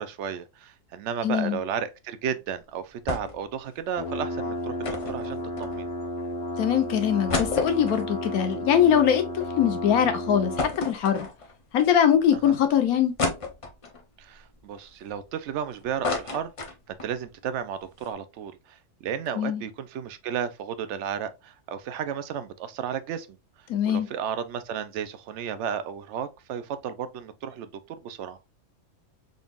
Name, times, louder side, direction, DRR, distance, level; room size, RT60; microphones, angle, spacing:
voice 1, 0.0-5.9 12.3-12.5 14.2-16.5 16.9-23.3 23.8-27.7 28.0-28.4, right 8 dB, 65° right, 0.7 m, -33 dB
voice 2, 1.2-1.6 6.6-11.3 11.7-13.1 19.4-19.6 23.7-24.1, left 9 dB, 80° left, 1.2 m, -22 dB
sound 1, 3.1-3.5 3.8-3.9 4.8-6.1 6.6-6.7 7.0-9.5 9.9-10.0 10.6-11.7 12.2-12.3 13.2-14.0 14.6-15.6 15.8-17.2 17.5-17.6 17.8-18.1, left 3 dB, 40° left, 0.5 m, -31 dB
sound 2, 4.0-10.7, left 1 dB, 55° left, 1.1 m, -33 dB
3.9 x 3.5 x 2.3 m
omnidirectional pair, 1.6 m